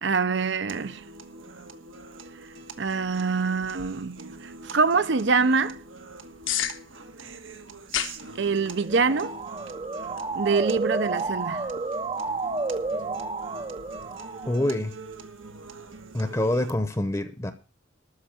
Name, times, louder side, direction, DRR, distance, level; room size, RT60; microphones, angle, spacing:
voice 1, 0.0-1.0 2.8-5.8 8.4-9.4 10.3-11.7, right 4 dB, 65° right, 0.7 m, -25 dB
sound 1, 0.7-16.7, right 3 dB, 85° right, 1.5 m, -44 dB
sound 2, 3.6-14.1, left 10 dB, 85° left, 1.4 m, -39 dB
Motor vehicle (road) / Siren, 8.8-14.7, right 3 dB, 25° right, 0.6 m, -31 dB
voice 2, 14.5-14.9 16.1-17.5, left 1 dB, 15° left, 0.8 m, -26 dB
13.0 x 5.4 x 9.0 m
head